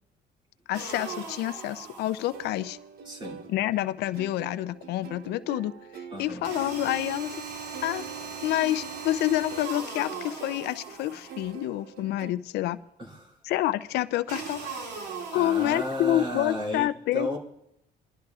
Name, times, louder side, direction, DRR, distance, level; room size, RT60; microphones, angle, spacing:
voice 1, 0.7-2.8 3.5-7.4 7.8-8.0 8.4-12.8 13.4-14.6 15.3-17.4, left 14 dB, 75° left, 15 dB, 0.4 m, -28 dB
sound 1, 0.7-2.7 6.4-11.7 14.3-16.7, right 5 dB, 80° right, 2.5 m, -39 dB
sound 2, 2.3-12.3, right 7 dB, 60° right, 0.8 m, -46 dB
voice 2, 3.0-3.4 6.1-6.4 13.0-13.3 15.3-17.4, left 1 dB, 30° right, -1 dB, 2.7 m, -33 dB
23.0 x 11.5 x 2.4 m, 0.80 s
cardioid pair, 110°, 17 cm